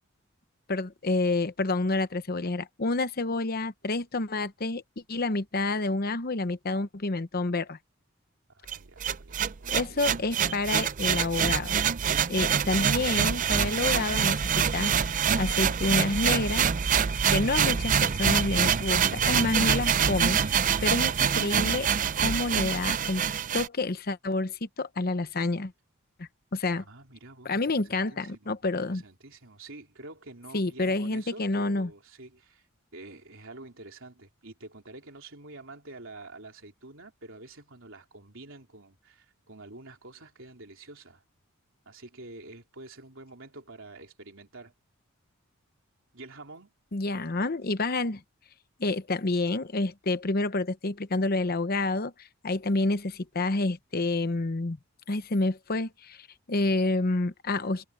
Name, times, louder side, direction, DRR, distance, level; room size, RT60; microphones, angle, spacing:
voice 1, 0.7-4.8 5.1-7.8 9.7-11.8 12.3-16.7 17.3-21.9 22.2-23.2 23.5-25.7 26.2-26.8 27.4-29.0 30.5-31.9 46.9-48.2 48.8-54.8 55.1-57.8, left 2 dB, 45° left, 0.8 m, -29 dB
voice 2, 8.5-10.0 26.7-27.6 27.9-28.5 28.9-32.7 32.9-41.2 41.9-44.7 46.1-46.7, right 2 dB, 60° right, 3.9 m, -47 dB
sound 1, 8.7-23.7, right 7 dB, 35° right, 0.5 m, -25 dB
head